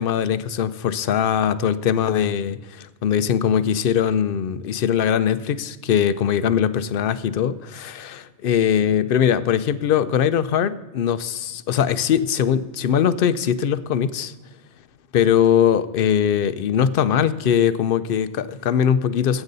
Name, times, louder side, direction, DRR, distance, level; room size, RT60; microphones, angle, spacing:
voice 1, 0.0-14.3 15.1-19.4, left 8 dB, 60° left, 15 dB, 0.7 m, -21 dB
14.5 x 8.1 x 4.0 m, 1.1 s
omnidirectional pair, 1.2 m